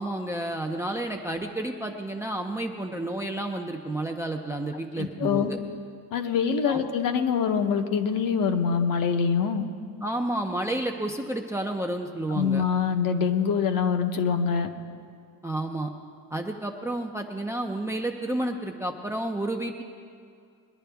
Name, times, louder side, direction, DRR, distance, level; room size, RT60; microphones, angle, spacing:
voice 1, 0.0-5.6 6.7-6.8 10.0-12.6 15.4-15.9 16.3-19.8, right 1 dB, 10° right, 3 dB, 0.4 m, -30 dB
voice 2, 5.0-5.5 6.1-9.7 12.3-14.7, left 6 dB, 60° left, 7 dB, 0.9 m, -24 dB
21.5 x 11.0 x 3.4 m, 2.3 s
cardioid pair, 165°, 39 cm